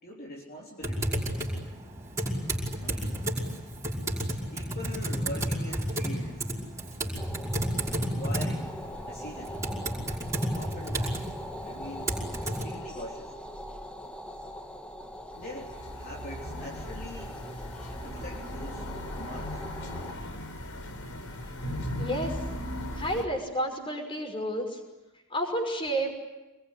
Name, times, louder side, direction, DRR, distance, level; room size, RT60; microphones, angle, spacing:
voice 1, 0.0-1.2 2.8-3.2 4.5-6.5 7.9-8.8 9.0-9.6 10.5-11.1 11.6-13.3 15.4-17.4 17.9-18.9 19.2-19.6, left 1 dB, 45° left, -3 dB, 3.6 m, -43 dB
Typing, 0.8-12.6, right 1 dB, 15° right, 5.5 m, -32 dB
sound 1, 7.2-20.1, equal, 5° left, 1.6 m, -42 dB
sound 2, 15.3-23.2, left 1 dB, 80° left, 4.0 m, -37 dB
voice 2, 22.0-22.4 22.9-24.8 25.3-26.1, right 1 dB, 25° left, 3 dB, 5.7 m, -30 dB
26.5 x 21.5 x 10.0 m, 1.0 s
head